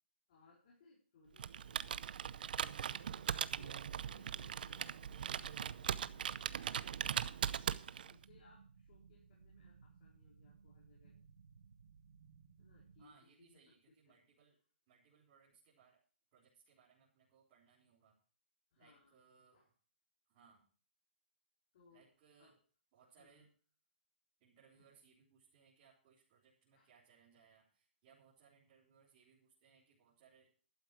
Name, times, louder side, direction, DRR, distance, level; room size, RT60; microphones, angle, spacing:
voice 1, 0.3-3.3 3.6-6.6 7.2-7.6 8.1-11.2 12.6-13.1 13.4-14.2 18.7-19.1 19.5-19.7 21.7-22.1 22.4-22.5 23.2-23.5 24.7-24.9 26.7-26.9, left 3 dB, 45° left, -3 dB, 4.4 m, -67 dB
Computer keyboard, 1.4-8.2, right 8 dB, 55° right, 0.7 m, -40 dB
sound 1, 1.4-13.1, right 6 dB, 85° right, 1.5 m, -61 dB
voice 2, 7.6-8.1 13.0-14.6 14.9-16.0 16.3-18.2 18.8-19.7 20.3-20.6 21.9-22.6 22.9-23.5 24.4-30.5, right 6 dB, 30° right, -6 dB, 3.9 m, -68 dB
12.0 x 8.8 x 6.2 m, 0.40 s
hypercardioid pair, 165°, 6 cm